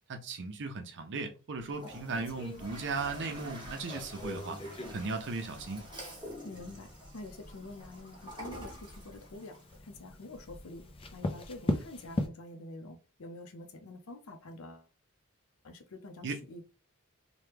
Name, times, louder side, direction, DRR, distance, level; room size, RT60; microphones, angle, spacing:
voice 1, 0.1-4.6 4.9-5.9 16.2-16.4, right 3 dB, 55° right, 0.6 m, -37 dB
Toilet flush, 1.6-9.8, equal, 20° right, 1.0 m, -48 dB
sound 1, 1.9-12.3, left 1 dB, 25° left, 0.4 m, -41 dB
voice 2, 6.4-6.9 7.1-9.6 9.8-10.9 11.1-14.9 15.6-16.6, left 2 dB, 65° left, 0.6 m, -47 dB
3.0 x 2.2 x 3.3 m
head